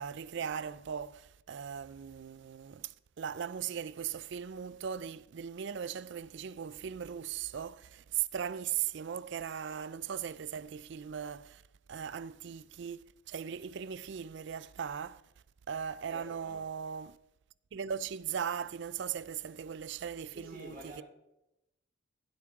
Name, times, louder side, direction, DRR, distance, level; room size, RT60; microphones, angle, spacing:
voice 1, 0.0-11.6 11.9-15.2 15.7-17.2 17.7-21.0, right 8 dB, 65° right, 0.4 m, -38 dB
voice 2, 16.1-16.6 20.3-21.0, right 1 dB, 45° right, 3.9 m, -48 dB
16.0 x 8.4 x 3.6 m
head